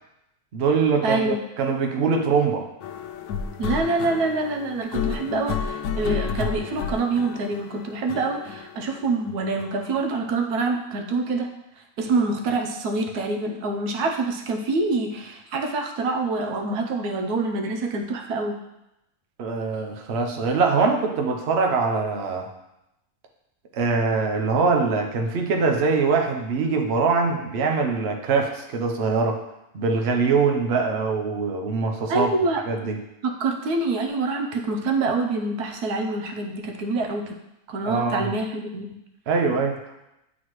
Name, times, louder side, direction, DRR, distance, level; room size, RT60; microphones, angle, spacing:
voice 1, 0.5-2.6 19.4-22.5 23.7-29.4 29.7-32.3 32.7-33.0 37.8-38.2 39.3-39.8, right 4 dB, 50° right, 3 dB, 0.9 m, -23 dB
voice 2, 1.0-1.4 3.6-11.5 12.0-18.6 32.1-32.6 33.2-37.4 37.7-38.9, right 3 dB, 85° right, 3 dB, 1.3 m, -26 dB
sound 1, 2.8-10.1, left 6 dB, 80° left, 1.1 m, -31 dB
9.3 x 4.1 x 3.1 m, 0.89 s
omnidirectional pair, 1.6 m